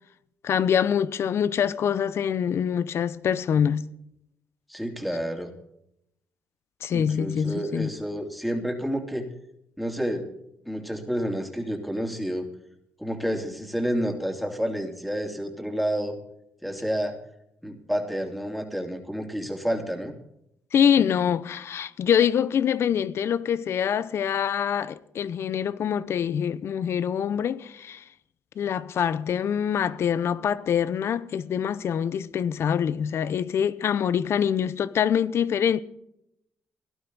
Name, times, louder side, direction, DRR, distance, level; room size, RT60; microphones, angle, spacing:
voice 1, 0.4-3.9 6.8-7.9 20.7-28.0 28.6-35.8, left 8 dB, 60° left, 0.7 m, -25 dB
voice 2, 4.7-5.5 6.9-9.3 9.8-10.3 10.6-12.5 13.0-16.2 16.6-17.2 17.6-20.1, equal, ahead, 3.0 m, -29 dB
17.5 x 12.0 x 4.0 m
supercardioid pair, 70°, 5 cm